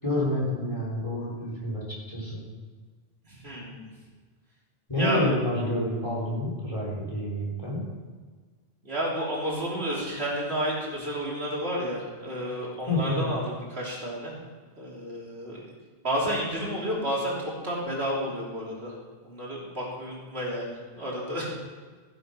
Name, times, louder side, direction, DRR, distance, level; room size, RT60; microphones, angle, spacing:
voice 1, 0.0-2.4 4.9-7.8 12.9-13.3, left 1 dB, 30° left, -4 dB, 3.9 m, -28 dB
voice 2, 3.2-3.9 5.0-5.3 8.8-14.3 14.8-15.6 16.0-18.9 19.2-21.5, equal, 80° right, -5 dB, 3.4 m, -31 dB
15.0 x 7.1 x 5.6 m, 1.5 s
omnidirectional pair, 1.0 m